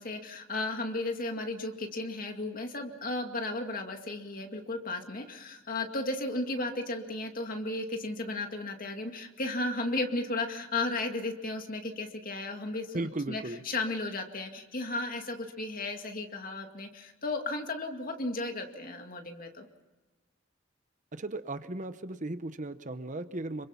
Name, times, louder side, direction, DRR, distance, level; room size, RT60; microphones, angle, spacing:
voice 1, 0.0-19.7, left 2 dB, 45° left, 4 dB, 2.3 m, -34 dB
voice 2, 12.9-13.6 21.1-23.7, right 2 dB, 40° right, 11 dB, 0.9 m, -36 dB
27.0 x 24.0 x 5.8 m, 1.3 s
head